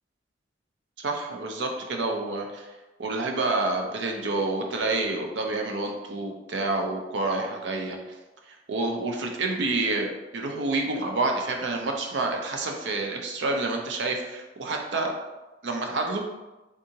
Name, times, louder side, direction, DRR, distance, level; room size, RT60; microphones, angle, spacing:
voice 1, 1.0-2.7 3.0-8.0 8.5-15.1 15.6-16.2, right 2 dB, 70° right, 2 dB, 0.5 m, -28 dB
3.6 x 2.7 x 2.7 m, 1.1 s
head